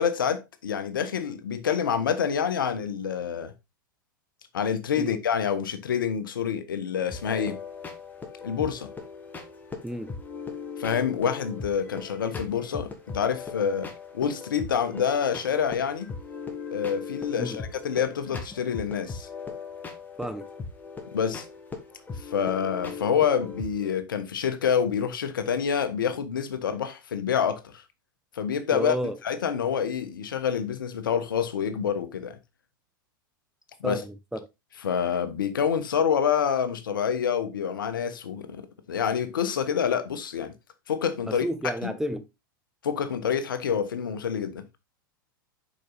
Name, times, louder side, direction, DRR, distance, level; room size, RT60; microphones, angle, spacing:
voice 1, 0.0-3.5 4.5-7.6 8.4-8.9 10.8-16.1 16.7-19.3 21.1-21.4 22.2-27.8 28.3-29.0 29.2-32.4 33.8-34.0 34.8-40.5 40.9-41.4 41.8-41.9 42.8-44.6, left 7 dB, 75° left, 1.2 m, -27 dB
sound 1, 7.1-24.0, left 5 dB, 15° left, 1.8 m, -39 dB
voice 2, 9.8-10.1 17.4-17.6 20.2-20.5 28.7-29.2 33.8-34.4 41.3-42.3, right 1 dB, 5° right, 0.6 m, -31 dB
6.6 x 5.3 x 4.0 m
figure-of-eight pair, 90°, 11 cm